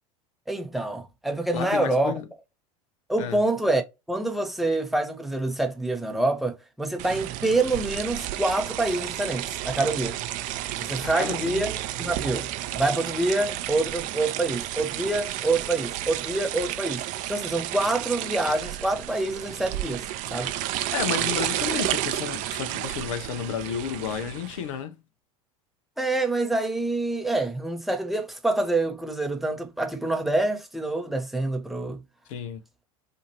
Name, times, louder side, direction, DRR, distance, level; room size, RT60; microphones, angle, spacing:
voice 1, 0.5-2.1 3.1-10.2 10.8-17.0 17.3-20.5 26.0-32.0, right 2 dB, ahead, 0.6 m, -26 dB
voice 2, 1.5-2.3 3.2-3.4 11.0-11.7 20.3-20.6 20.9-25.0 32.3-32.6, left 8 dB, 65° left, 0.6 m, -32 dB
sound 1, 7.0-24.7, right 13 dB, 45° right, 0.5 m, -31 dB
2.7 x 2.5 x 2.8 m
hypercardioid pair, 80°, 18 cm